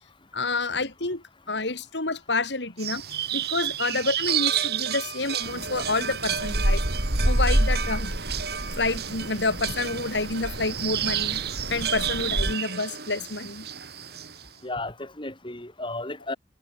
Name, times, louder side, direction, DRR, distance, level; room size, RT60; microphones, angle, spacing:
voice 1, 0.3-3.0 3.3-6.8 7.2-8.1 8.7-11.4 11.7-13.7, left 3 dB, 80° left, 3.3 m, -28 dB
sound 1, 2.8-14.5, right 10 dB, 65° right, 7.9 m, -31 dB
sound 2, 5.4-12.5, right 1 dB, 80° right, 4.8 m, -28 dB
voice 2, 14.6-16.4, left 2 dB, 30° left, 6.0 m, -34 dB
head